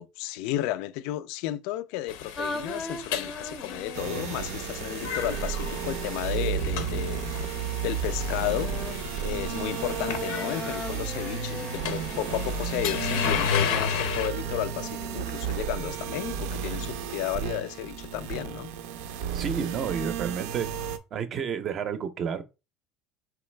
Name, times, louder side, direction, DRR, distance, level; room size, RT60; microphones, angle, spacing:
voice 1, 0.0-8.9 9.2-18.7, left 14 dB, 70° left, 0.3 m, -33 dB
sound 1, 2.1-14.3, left 7 dB, 90° left, 0.7 m, -34 dB
sound 2, 2.4-6.9 8.4-15.4, left 3 dB, 15° left, 0.5 m, -40 dB
sound 3, 3.9-21.0, right 8 dB, 85° right, 0.5 m, -33 dB
voice 2, 19.3-20.7 21.1-22.4, right 7 dB, 35° right, 0.5 m, -30 dB
4.7 x 3.2 x 3.2 m
cardioid pair, 155°, 0 cm